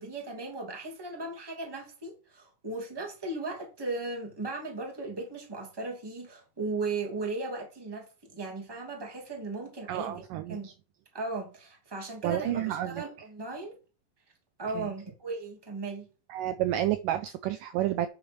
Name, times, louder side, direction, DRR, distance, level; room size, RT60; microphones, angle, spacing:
voice 1, 0.0-10.2 10.5-10.7 11.1-13.8 14.6-16.1, right 3 dB, 10° right, 1.7 m, -37 dB
voice 2, 9.9-10.7 12.2-13.0 14.8-14.9 16.3-18.1, right 12 dB, 85° right, 1.9 m, -30 dB
8.6 x 6.1 x 6.0 m
omnidirectional pair, 4.5 m